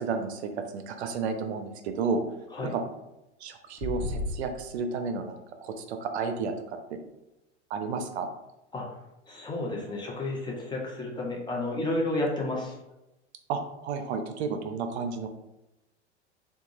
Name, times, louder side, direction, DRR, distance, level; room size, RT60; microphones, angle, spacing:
voice 1, 0.0-2.2 2.6-2.8 3.4-6.5 6.9-7.0 7.7-8.3 13.5-15.3, right 5 dB, 65° right, 7 dB, 0.5 m, -32 dB
sound 1, 3.8-4.4, left 2 dB, 50° left, 0.5 m, -31 dB
voice 2, 9.3-12.8, left 2 dB, 10° left, -2 dB, 0.7 m, -31 dB
3.6 x 2.3 x 2.9 m, 0.93 s
hypercardioid pair, 90°, 35 cm